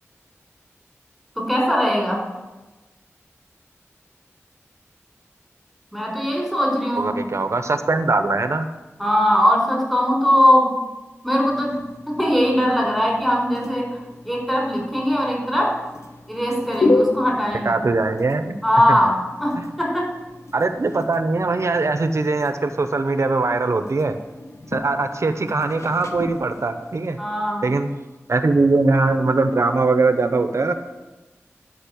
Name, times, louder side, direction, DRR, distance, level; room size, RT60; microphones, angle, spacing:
voice 1, 1.3-2.3 5.9-7.1 9.0-10.7 11.2-11.8 12.0-15.7 16.3-17.7 18.6-20.1 27.2-27.6, equal, 5° left, -1 dB, 4.8 m, -20 dB
voice 2, 7.0-8.7 17.6-18.6 18.9-19.0 19.6-19.7 20.5-24.2 24.7-27.2 27.6-27.9 28.3-30.7, right 3 dB, 75° right, 9 dB, 0.9 m, -21 dB
sound 1, 11.5-27.0, left 2 dB, 75° left, 1.1 m, -31 dB
12.0 x 5.5 x 8.5 m, 1.1 s
wide cardioid pair, 55°, 5 cm